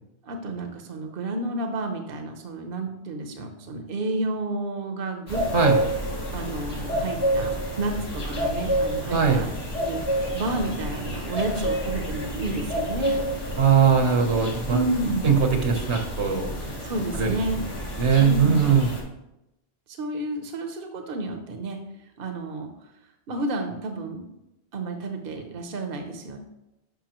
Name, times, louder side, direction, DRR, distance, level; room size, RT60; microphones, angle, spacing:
voice 1, 0.2-5.8 6.3-9.5 9.8-13.2 14.7-15.3 16.8-17.6 18.2-18.7 19.9-21.8 22.2-22.7 23.3-24.2 24.7-26.4, right 2 dB, 60° right, 5 dB, 1.0 m, -31 dB
sound 1, 5.3-19.0, equal, 65° left, 2.3 m, -29 dB
voice 2, 9.1-9.4 13.6-14.8 15.2-16.5 17.1-17.4 18.0-18.9, right 6 dB, 80° right, 4 dB, 1.4 m, -20 dB
10.5 x 5.6 x 3.0 m, 0.89 s
omnidirectional pair, 1.1 m